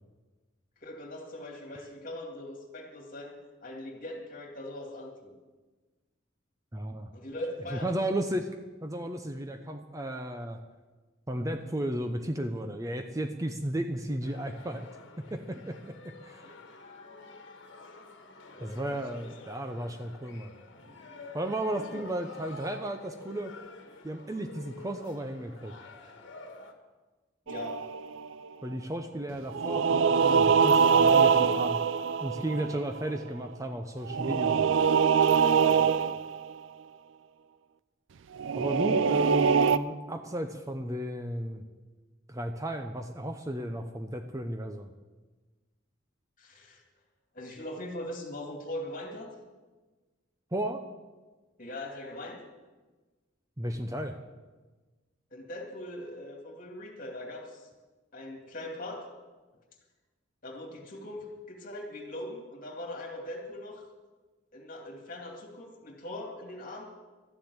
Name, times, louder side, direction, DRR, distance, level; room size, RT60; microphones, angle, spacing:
voice 1, 0.8-5.3 7.1-8.1 16.4-16.5 17.9-18.1 18.5-19.3 21.8-22.1 27.5-27.8 35.4-36.1 46.4-46.8 47.3-49.3 51.6-52.4 55.3-57.7 58.1-59.1 60.4-63.8 64.5-66.9, left 1 dB, 45° left, 1 dB, 2.5 m, -41 dB
voice 2, 6.7-7.1 7.7-8.5 8.8-10.6 11.3-14.9 15.2-16.4 18.6-20.5 21.3-23.5 24.0-25.7 28.6-31.8 32.2-34.8 38.6-41.6 42.3-44.9 50.5-50.8 53.6-54.2, right 1 dB, 15° right, 6 dB, 0.7 m, -34 dB
sound 1, 14.2-26.7, left 3 dB, 65° left, 1.5 m, -49 dB
sound 2, 27.5-28.3 29.5-33.0 34.1-36.5 38.4-39.8, right 6 dB, 70° right, 0.4 m, -23 dB
13.0 x 7.4 x 9.6 m, 1.3 s
head